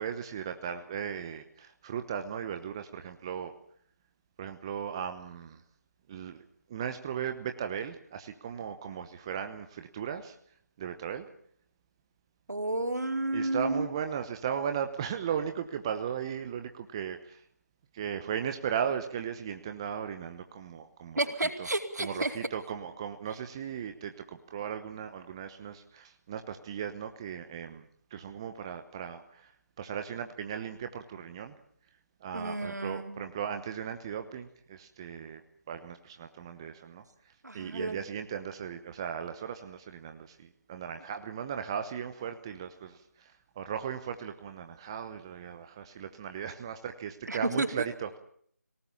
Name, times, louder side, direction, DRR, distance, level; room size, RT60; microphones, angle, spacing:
voice 1, 0.0-3.5 4.4-5.6 6.1-6.4 6.7-10.3 10.8-11.3 13.3-17.4 17.9-21.2 22.0-27.9 28.1-29.5 29.8-31.5 32.2-35.4 35.7-37.0 37.5-48.2, right 8 dB, 15° right, 7 dB, 0.9 m, -37 dB
voice 2, 12.5-13.9 21.2-22.3 32.3-33.2 37.4-38.0 47.3-47.7, right 2 dB, 80° right, 5 dB, 4.2 m, -31 dB
25.5 x 18.5 x 7.2 m, 0.63 s
figure-of-eight pair, 165°, 9 cm